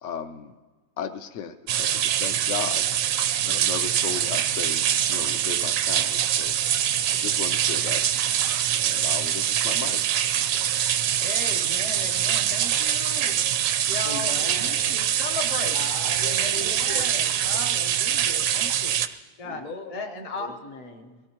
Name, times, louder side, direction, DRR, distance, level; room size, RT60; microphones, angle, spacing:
voice 1, 0.0-0.5 1.0-2.8 3.4-6.5 7.1-8.1 8.7-10.0, left 7 dB, 80° left, 8 dB, 0.6 m, -35 dB
sound 1, 1.7-19.1, right 10 dB, 70° right, 0.8 m, -24 dB
voice 2, 11.2-13.4 13.9-15.8 16.2-18.9 19.4-19.6 19.9-20.5, left 3 dB, 30° left, 3 dB, 0.6 m, -36 dB
voice 3, 14.0-15.0 15.7-17.1 19.4-19.9 20.4-21.2, left 3 dB, 55° left, 4 dB, 1.5 m, -38 dB
22.5 x 17.0 x 2.9 m, 1.3 s
omnidirectional pair, 1.8 m